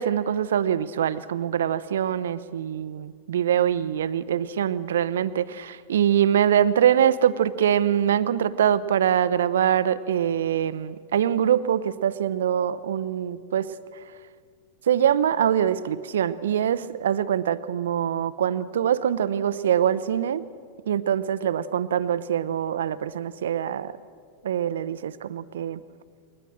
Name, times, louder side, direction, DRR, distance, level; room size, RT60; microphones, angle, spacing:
voice 1, 0.0-14.0 14.9-20.4 20.9-24.0 24.4-25.8, right 9 dB, 60° right, 15 dB, 0.7 m, -24 dB
21.5 x 19.5 x 7.6 m, 2.1 s
figure-of-eight pair, 90°, 0 cm